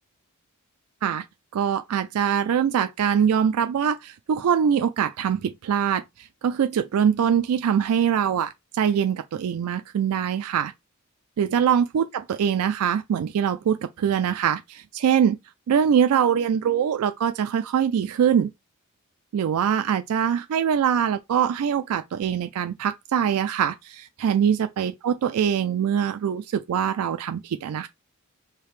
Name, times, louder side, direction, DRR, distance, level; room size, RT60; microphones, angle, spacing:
voice 1, 1.5-10.7 11.4-15.4 15.7-18.5 19.3-27.9, right 8 dB, 80° right, 0.3 m, -23 dB
4.8 x 2.8 x 3.1 m
head